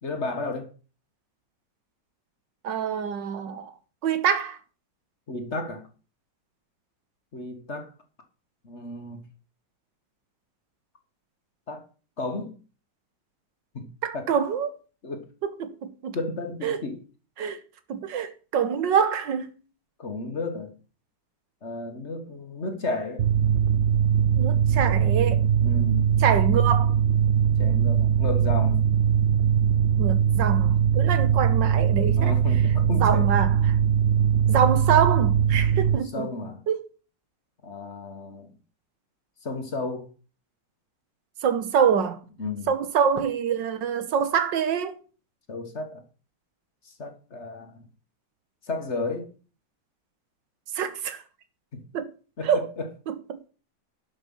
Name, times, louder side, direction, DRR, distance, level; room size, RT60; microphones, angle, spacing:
voice 1, 0.0-0.7 5.3-5.9 7.3-7.9 8.6-9.2 11.7-11.9 12.2-12.6 13.7-14.3 15.0-15.3 16.1-17.0 20.0-20.7 21.6-23.2 25.6-26.2 27.6-28.9 32.2-33.3 36.1-36.6 37.6-38.5 39.4-40.1 42.4-42.7 45.5-46.0 46.8-47.9 48.6-49.3 51.7-51.8 52.4-52.9, left 2 dB, 40° left, 1.7 m, -33 dB
voice 2, 2.6-3.7 4.0-4.6 14.0-14.7 15.4-16.2 16.6-16.8 17.4-17.6 17.9-19.5 24.4-25.4 26.2-27.0 30.0-32.4 32.9-33.8 34.5-36.3 36.7-36.8 41.4-42.2 42.7-45.0 50.7-51.2 51.9-52.1 52.4-52.7 53.1-53.4, right 7 dB, 90° right, 1.8 m, -25 dB
Mechanical fan, 23.2-36.0, right 8 dB, 65° right, 0.7 m, -21 dB
11.0 x 6.5 x 5.5 m
omnidirectional pair, 1.9 m